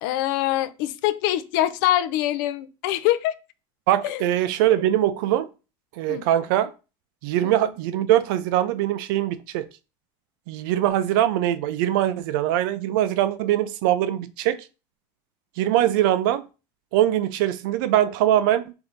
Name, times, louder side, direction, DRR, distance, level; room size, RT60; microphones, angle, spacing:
voice 1, 0.0-3.3 4.0-4.3 6.1-6.3 7.4-7.5, left 14 dB, 70° left, 0.4 m, -24 dB
voice 2, 3.9-5.5 6.0-6.7 7.2-9.7 10.5-14.6 15.6-16.4 16.9-18.7, right 12 dB, 75° right, 0.4 m, -22 dB
3.3 x 2.7 x 3.8 m
cardioid pair, 165°, 11 cm